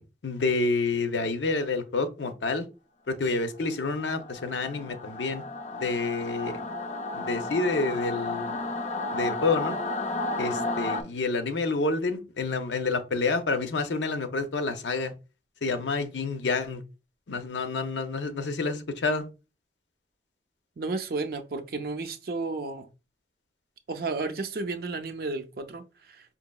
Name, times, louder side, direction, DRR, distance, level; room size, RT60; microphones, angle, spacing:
voice 1, 0.0-2.7 3.1-5.4 5.7-6.6 7.1-8.6 9.1-9.8 10.4-15.1 15.6-16.8 17.3-19.2, left 3 dB, 80° left, 0.6 m, -28 dB
Singing / Musical instrument, 3.8-11.0, left 2 dB, 40° left, 0.4 m, -33 dB
voice 2, 20.8-22.9 23.9-26.2, right 3 dB, 55° right, 0.5 m, -32 dB
5.3 x 2.8 x 2.3 m
head